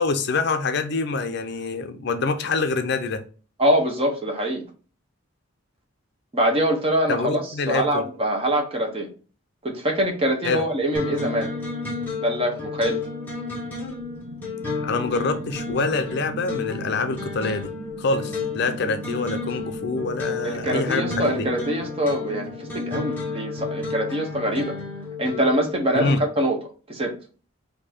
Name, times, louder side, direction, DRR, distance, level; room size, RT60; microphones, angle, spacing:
voice 1, 0.0-3.2 7.1-8.0 10.4-10.6 14.8-17.7 18.0-21.3 25.9-26.2, left 3 dB, 50° left, 0.5 m, -25 dB
voice 2, 3.6-4.6 6.3-9.1 9.6-11.5 12.2-13.0 20.4-24.8 25.2-26.6 26.9-27.2, right 1 dB, 25° right, 0.9 m, -24 dB
sound 1, 10.9-25.7, left 4 dB, 10° left, 1.4 m, -32 dB
sound 2, 13.8-21.7, right 3 dB, 60° right, 1.1 m, -41 dB
4.4 x 2.7 x 4.2 m
head